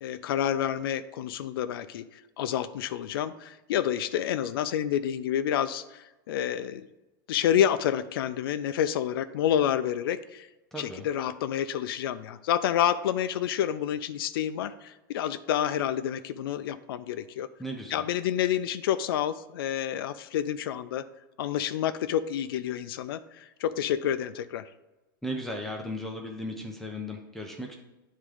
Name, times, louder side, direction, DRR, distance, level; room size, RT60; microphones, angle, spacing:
voice 1, 0.0-6.9 7.3-10.5 10.8-17.5 17.9-21.0 21.4-24.7, left 10 dB, 90° left, 12 dB, 0.4 m, -29 dB
voice 2, 10.7-11.1 17.6-18.0 25.2-27.8, equal, 5° left, 1 dB, 0.5 m, -36 dB
9.3 x 3.7 x 4.9 m, 1.0 s
supercardioid pair, 165°, 12 cm